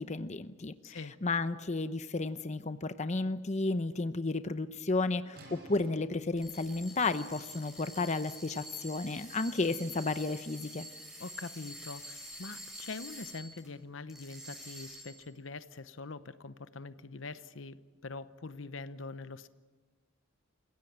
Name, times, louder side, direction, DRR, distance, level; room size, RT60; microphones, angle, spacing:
voice 1, 0.0-10.9, left 3 dB, 35° left, 11 dB, 0.8 m, -33 dB
voice 2, 0.8-1.1 11.2-19.5, left 3 dB, 80° left, 13 dB, 0.9 m, -44 dB
sound 1, 5.3-11.0, right 1 dB, 55° right, 5.1 m, -59 dB
sound 2, 6.3-13.7 14.1-15.3, equal, 5° right, 6.2 m, -48 dB
28.5 x 16.5 x 8.8 m, 1.3 s
head